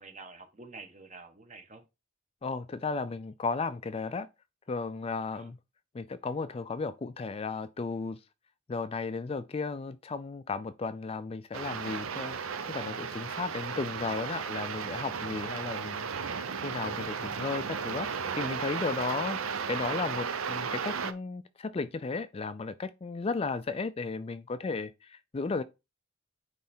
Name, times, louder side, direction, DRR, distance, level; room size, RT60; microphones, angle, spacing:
voice 1, 0.0-1.8 5.3-5.5, right 3 dB, 35° right, 1.1 m, -48 dB
voice 2, 2.4-4.3 4.7-5.6 5.9-8.2 8.7-18.1 18.4-19.4 19.7-25.6, left 4 dB, 30° left, 0.3 m, -34 dB
sound 1, 11.5-21.1, right 6 dB, 80° right, 0.7 m, -35 dB
9.2 x 3.2 x 4.3 m
head